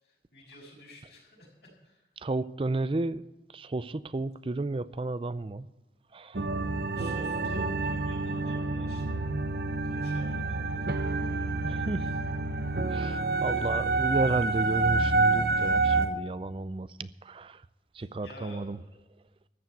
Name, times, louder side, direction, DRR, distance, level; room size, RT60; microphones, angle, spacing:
voice 1, 0.0-2.1 6.9-9.2 9.8-11.1 12.1-12.2 13.4-13.6 18.0-18.7, equal, 70° left, 5.8 m, -51 dB
voice 2, 2.2-3.2 3.5-5.7 6.1-6.5 11.6-12.1 12.9-17.6 17.9-18.8, right 2 dB, 30° right, 0.4 m, -32 dB
sound 1, 6.3-16.1, right 3 dB, 60° right, 0.8 m, -28 dB
14.0 x 7.1 x 9.3 m
head